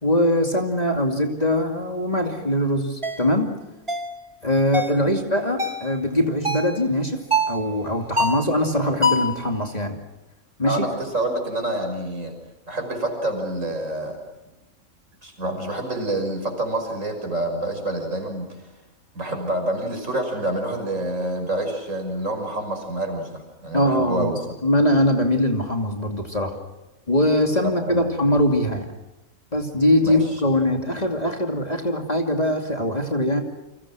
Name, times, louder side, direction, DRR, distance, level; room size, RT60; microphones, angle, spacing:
voice 1, 0.0-3.5 4.4-7.2 7.5-10.0 10.6-10.9 23.7-24.3 24.6-26.6 27.1-28.9 29.5-33.4, left 1 dB, 30° left, 3 dB, 2.6 m, -22 dB
sound 1, 3.0-3.2 3.9-4.1 4.7-5.0 5.6-5.9 6.4-6.8 7.3-7.6 8.2-8.5 9.0-9.4, equal, 20° right, 2.6 m, -23 dB
voice 2, 10.6-12.3 12.7-14.2 15.2-18.5 19.1-24.4 27.6-28.1 30.0-30.2, right 1 dB, 60° right, 4 dB, 6.3 m, -27 dB
30.0 x 25.5 x 6.2 m, 1.0 s
omnidirectional pair, 1.5 m